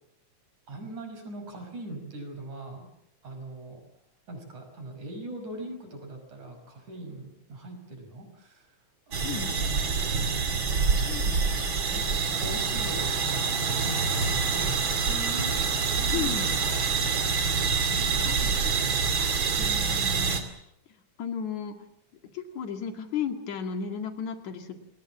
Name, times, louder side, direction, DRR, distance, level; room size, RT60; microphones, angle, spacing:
voice 1, 0.7-2.9 3.2-3.8 4.3-8.7 9.1-11.3 11.8-15.6 15.9-19.0, right 2 dB, 90° right, 5 dB, 7.2 m, -41 dB
sound 1, 9.1-20.4, right 5 dB, 45° right, 3.1 m, -26 dB
voice 2, 9.2-9.6 11.1-11.4 16.1-16.5 18.3-18.4 18.7-20.5 21.2-21.8 22.3-24.8, left 7 dB, 80° left, 6 dB, 3.6 m, -35 dB
28.0 x 20.5 x 7.3 m, 0.74 s
omnidirectional pair, 3.3 m